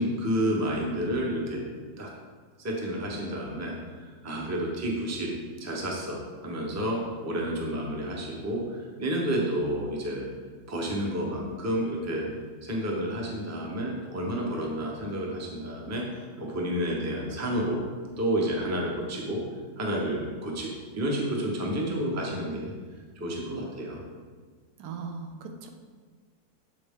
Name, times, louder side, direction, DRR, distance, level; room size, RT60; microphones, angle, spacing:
voice 1, 0.0-1.6 2.0-2.1 2.6-3.7 4.2-5.3 5.6-10.3 10.7-12.2 12.6-17.8 18.2-19.4 19.8-22.7 23.2-24.0, right 1 dB, 15° right, -1 dB, 0.6 m, -30 dB
voice 2, 24.8-25.7, right 5 dB, 85° right, 4 dB, 1.3 m, -39 dB
7.6 x 4.1 x 3.6 m, 1.5 s
omnidirectional pair, 1.7 m